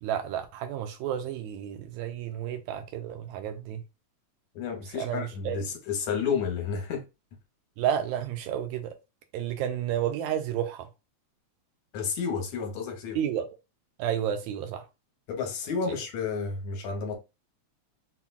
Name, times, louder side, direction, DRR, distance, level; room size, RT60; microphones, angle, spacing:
voice 1, 0.0-3.8 5.0-5.6 7.8-9.0 9.3-10.9 13.2-13.5 14.0-14.9 15.9-16.0, right 10 dB, 85° right, 1.9 m, -31 dB
voice 2, 4.6-7.0 11.9-13.2 15.3-17.2, left 6 dB, 75° left, 2.1 m, -31 dB
5.6 x 2.2 x 2.3 m
omnidirectional pair, 3.4 m